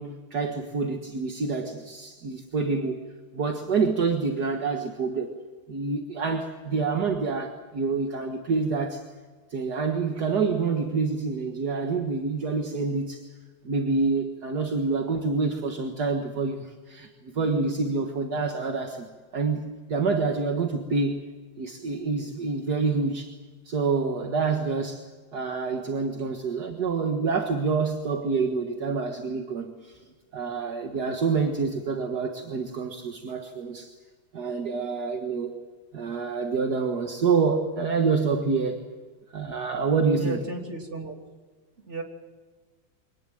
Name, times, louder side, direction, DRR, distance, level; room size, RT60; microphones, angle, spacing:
voice 1, 0.0-3.0 3.3-5.3 5.7-9.0 9.5-13.2 13.6-21.2 21.6-23.3 23.7-25.0 25.3-29.9 30.3-33.9 34.3-35.5 35.9-38.9 39.3-40.4, right 4 dB, 60° right, 3 dB, 2.1 m, -27 dB
voice 2, 40.1-41.2 41.9-42.0, right 2 dB, 35° right, 2 dB, 3.5 m, -34 dB
24.5 x 19.5 x 7.9 m, 1.4 s
omnidirectional pair, 2.0 m